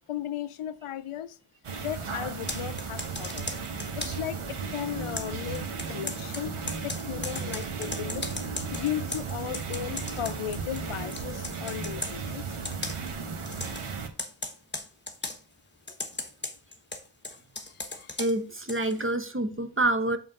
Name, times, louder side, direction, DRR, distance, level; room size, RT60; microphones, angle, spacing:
voice 1, 0.1-1.4 1.8-3.5 3.9-8.3 8.7-12.4 17.3-17.4 17.7-18.2, left 11 dB, 85° left, 0.6 m, -36 dB
sound 1, 1.6-14.1, right 5 dB, 80° right, 1.2 m, -35 dB
Computer keyboard, 2.3-4.3 5.2-10.9 11.1-12.2 12.6-13.1 13.5-13.8 14.2-15.4 15.9-19.0, left 2 dB, 20° left, 1.1 m, -37 dB
voice 2, 18.2-20.2, right 2 dB, 25° right, 0.8 m, -27 dB
7.6 x 3.8 x 5.3 m
wide cardioid pair, 75°, 49 cm